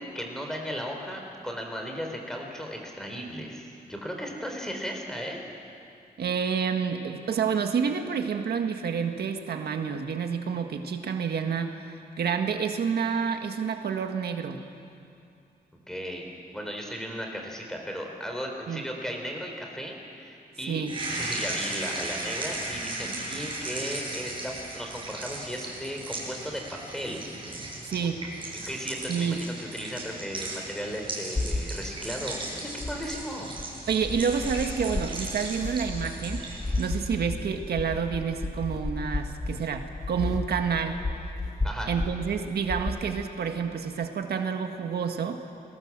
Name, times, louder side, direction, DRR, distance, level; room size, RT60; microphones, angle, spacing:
voice 1, 0.1-5.4 15.9-16.3 16.5-27.6 28.5-33.5 41.6-41.9, equal, 5° left, 1 dB, 3.9 m, -36 dB
voice 2, 6.2-14.6 18.7-18.8 20.7-21.0 27.8-28.2 29.1-29.4 33.9-36.4 36.8-41.0 41.9-45.4, right 6 dB, 85° right, 5 dB, 1.7 m, -29 dB
sound 1, 20.9-37.0, right 2 dB, 30° right, 7.3 m, -37 dB
sound 2, 31.3-31.7 32.8-33.2 33.6-42.2 42.7-43.0, left 2 dB, 25° left, 1.5 m, -33 dB
30.0 x 21.5 x 7.5 m, 2.5 s
wide cardioid pair, 160°, 16 cm